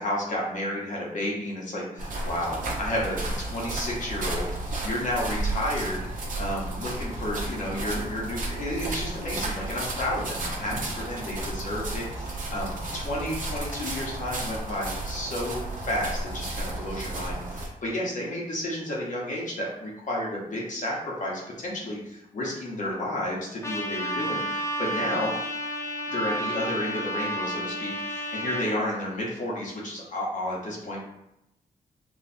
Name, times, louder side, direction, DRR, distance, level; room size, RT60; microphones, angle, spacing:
voice 1, 0.0-24.4 24.8-25.3 26.1-31.0, left 1 dB, 55° left, -4 dB, 1.0 m, -31 dB
sound 1, 2.0-17.7, right 2 dB, 60° right, 0.8 m, -33 dB
Trumpet, 23.6-28.7, equal, 20° left, 0.5 m, -31 dB
4.1 x 2.4 x 2.6 m, 0.85 s
wide cardioid pair, 150°, 15 cm